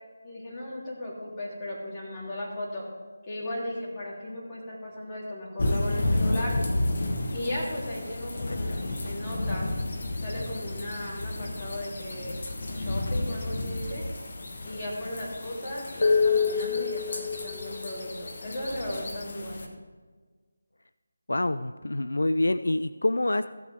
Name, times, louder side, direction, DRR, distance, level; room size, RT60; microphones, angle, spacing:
voice 1, 0.2-2.9 3.2-6.6 7.3-9.7 10.2-12.3 12.8-14.1 14.6-19.7, left 1 dB, 20° left, -7 dB, 3.2 m, -36 dB
sound 1, 5.6-19.7, left 3 dB, 50° left, 1.4 m, -30 dB
voice 2, 8.5-8.9 21.3-23.5, left 1 dB, 75° left, 13 dB, 0.4 m, -27 dB
15.0 x 8.5 x 3.4 m, 1.4 s
figure-of-eight pair, 160°, 0 cm